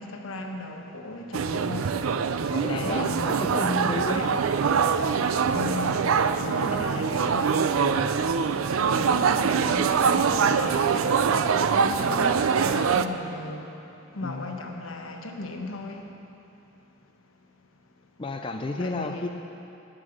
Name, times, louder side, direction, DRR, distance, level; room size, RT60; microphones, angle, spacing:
voice 1, 0.0-1.9 2.7-4.4 5.5-7.5 7.8-8.1 8.7-11.3 11.7-13.8 14.1-16.2 18.8-19.3, left 2 dB, 85° left, 3 dB, 1.1 m, -36 dB
sound 1, 1.3-13.1, right 6 dB, 85° right, 0.4 m, -24 dB
voice 2, 2.5-4.3 7.7-8.1 14.2-14.6 18.2-19.3, left 2 dB, 25° left, 4 dB, 0.4 m, -32 dB
9.8 x 9.0 x 6.4 m, 2.8 s
head